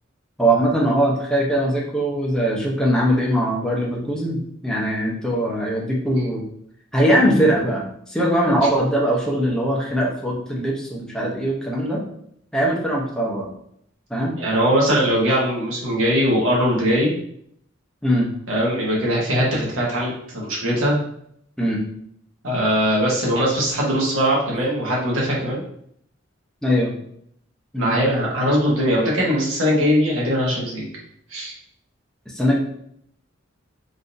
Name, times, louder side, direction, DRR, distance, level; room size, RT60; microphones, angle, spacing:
voice 1, 0.4-6.4 6.9-12.0 12.5-13.5 14.1-14.4 18.0-18.3 21.6-21.8 26.6-26.9 27.7-28.1 32.3-32.5, equal, 5° left, -3 dB, 0.6 m, -21 dB
voice 2, 14.4-17.1 18.5-21.0 22.4-25.6 27.8-30.9 31.3-31.5, equal, 75° right, -4 dB, 1.2 m, -20 dB
3.7 x 2.6 x 2.5 m, 0.70 s
head